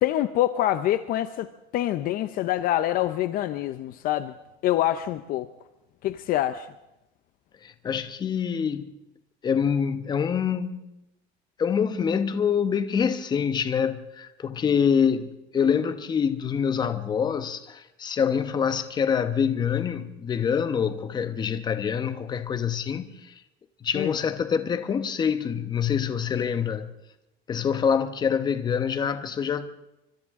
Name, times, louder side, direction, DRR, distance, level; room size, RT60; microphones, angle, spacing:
voice 1, 0.0-4.3 4.6-5.5 6.0-6.7 23.9-24.1, left 13 dB, 45° left, 0.7 m, -26 dB
voice 2, 7.6-8.9 9.4-10.9 11.6-23.4 23.8-26.9 27.5-29.7, left 7 dB, 20° left, 1.0 m, -26 dB
29.0 x 25.0 x 3.7 m
cardioid pair, 170°, 21 cm